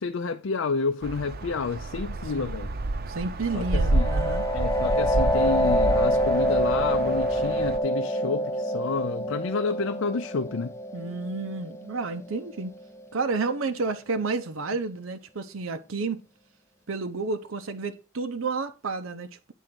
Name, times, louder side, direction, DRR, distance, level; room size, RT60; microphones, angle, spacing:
voice 1, 0.0-2.7 3.5-4.1 4.5-10.7, left 4 dB, 80° left, 0.5 m, -30 dB
sound 1, 1.0-7.8, right 2 dB, 50° right, 0.6 m, -29 dB
voice 2, 3.1-4.4 10.9-12.7 13.1-16.2 16.9-19.5, right 4 dB, 90° right, 0.8 m, -31 dB
sound 2, 3.6-13.0, equal, 15° left, 0.4 m, -26 dB
9.2 x 3.8 x 6.1 m
head